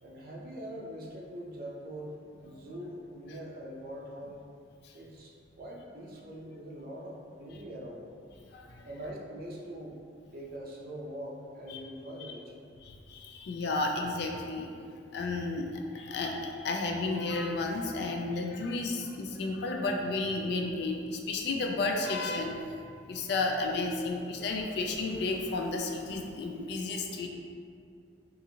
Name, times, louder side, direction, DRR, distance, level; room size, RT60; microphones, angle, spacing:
voice 1, 0.0-4.4 4.9-8.0 8.9-10.0 10.3-12.5, equal, 55° right, -2 dB, 0.5 m, -43 dB
voice 2, 8.5-8.9 11.7-11.8 12.2-12.3 12.8-14.7 15.1-22.6 23.1-27.3, left 3 dB, 60° left, 2 dB, 0.3 m, -32 dB
2.8 x 2.5 x 2.7 m, 2.4 s
head